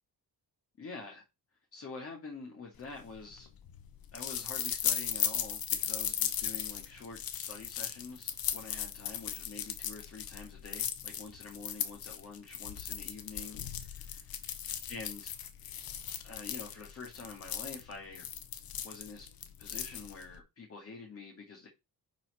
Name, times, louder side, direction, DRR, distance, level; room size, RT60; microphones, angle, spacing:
voice 1, 0.8-1.2 1.7-3.5 4.1-14.3 14.9-15.3 16.2-18.3 18.8-19.3 19.6-21.7, left 4 dB, 40° left, 2.0 m, -47 dB
sound 1, 2.9-20.4, left 9 dB, 85° left, 1.2 m, -37 dB
10.5 x 4.4 x 4.2 m
wide cardioid pair, 180°, 35 cm